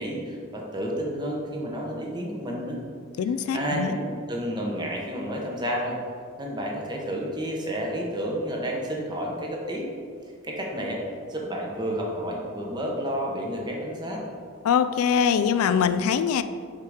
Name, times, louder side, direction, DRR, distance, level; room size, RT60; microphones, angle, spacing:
voice 1, 0.0-2.8 3.5-6.0 6.4-9.8 10.4-11.0 11.3-14.2, equal, 20° right, -1 dB, 0.9 m, -30 dB
voice 2, 3.2-3.9 14.6-16.4, left 7 dB, 85° left, 11 dB, 0.3 m, -23 dB
5.7 x 4.8 x 4.9 m, 2.2 s
head